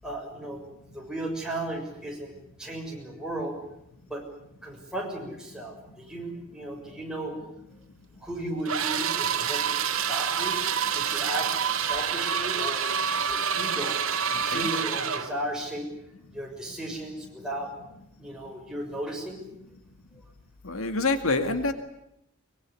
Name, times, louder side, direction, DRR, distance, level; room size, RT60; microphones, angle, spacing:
voice 1, 0.0-0.6 0.9-2.3 2.6-3.6 4.1-4.2 4.6-7.4 8.2-10.6 10.9-11.5 11.7-12.9 13.3-14.0 14.4-15.9 16.3-17.7 18.2-19.4, right 1 dB, 5° right, -1 dB, 6.5 m, -35 dB
sound 1, 8.7-15.3, right 7 dB, 70° right, 2.2 m, -27 dB
voice 2, 14.3-14.7 20.6-21.7, left 3 dB, 75° left, 8 dB, 2.1 m, -27 dB
23.5 x 22.5 x 9.8 m, 0.83 s
head